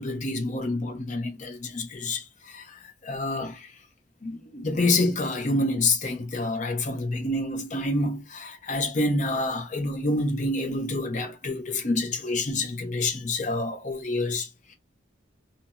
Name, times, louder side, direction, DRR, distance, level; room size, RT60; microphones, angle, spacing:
voice 1, 0.0-3.7 4.2-14.7, left 2 dB, 40° left, 0.7 m, -28 dB
2.7 x 2.3 x 2.7 m
head